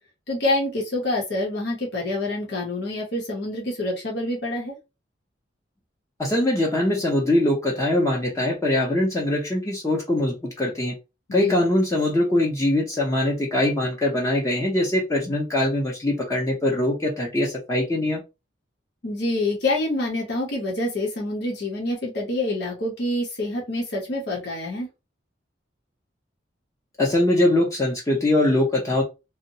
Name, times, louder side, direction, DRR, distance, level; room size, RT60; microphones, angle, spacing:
voice 1, 0.3-4.8 11.3-11.6 19.0-24.9, left 2 dB, 65° left, -2 dB, 0.8 m, -27 dB
voice 2, 6.2-10.9 11.3-18.2 27.0-29.0, left 1 dB, 15° left, -2 dB, 0.6 m, -22 dB
2.7 x 2.1 x 2.7 m, 0.26 s
head